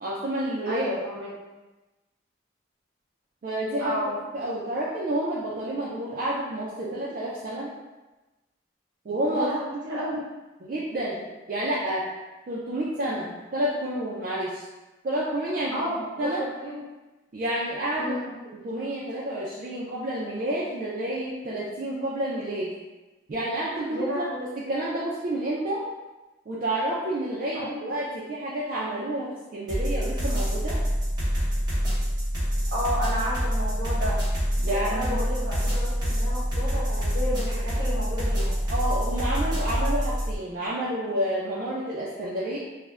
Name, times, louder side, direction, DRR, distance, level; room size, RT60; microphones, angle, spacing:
voice 1, 0.0-0.9 3.4-4.0 4.3-7.7 9.0-9.5 10.6-12.1 12.5-14.6 15.0-15.8 16.2-16.4 17.3-18.2 18.6-22.7 23.3-25.8 26.5-30.8 34.6-35.2 38.7-42.6, right 1 dB, 45° right, -7 dB, 0.3 m, -29 dB
voice 2, 0.6-1.3 3.8-4.2 9.3-10.1 15.7-16.8 18.0-18.3 23.9-24.4 27.5-27.8 32.7-34.2 34.6-38.5, equal, 70° right, -6 dB, 0.9 m, -32 dB
trap drum loop, 29.7-40.4, equal, 20° right, 0.8 m, -26 dB
2.4 x 2.1 x 3.2 m, 1.1 s
head